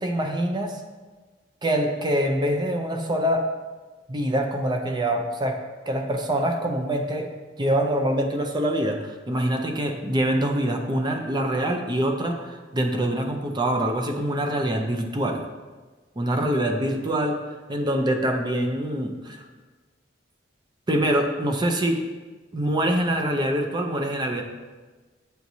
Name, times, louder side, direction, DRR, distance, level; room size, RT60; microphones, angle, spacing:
voice 1, 0.0-0.8 1.6-3.5 4.1-5.6 5.9-7.3 7.6-15.4 16.2-17.4 17.7-19.5 20.9-22.0 22.5-24.4, right 1 dB, 25° right, 3 dB, 0.5 m, -25 dB
8.0 x 4.5 x 2.7 m, 1.3 s
head